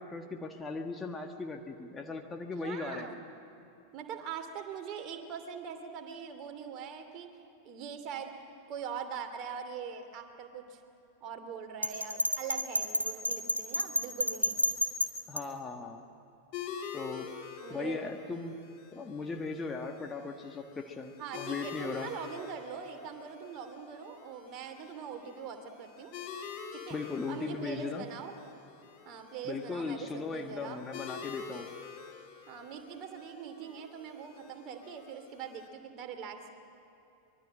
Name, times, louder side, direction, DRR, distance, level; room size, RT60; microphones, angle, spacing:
voice 1, 0.0-3.1 15.3-16.0 16.9-17.3 17.7-18.6 18.9-22.1 26.9-28.0 29.4-31.7, left 4 dB, 15° left, 3 dB, 1.6 m, -38 dB
voice 2, 2.6-3.2 3.9-7.3 7.6-10.8 11.2-14.6 17.6-18.1 21.2-26.1 26.7-27.0 27.3-28.3 29.0-30.8 32.5-36.5, right 7 dB, 35° right, 6 dB, 2.6 m, -42 dB
Bell, 11.8-15.4, equal, 85° right, 1.8 m, -30 dB
sound 1, 16.5-35.7, left 7 dB, 40° left, 3.3 m, -47 dB
24.5 x 22.5 x 7.7 m, 2.9 s
figure-of-eight pair, 90°, 0 cm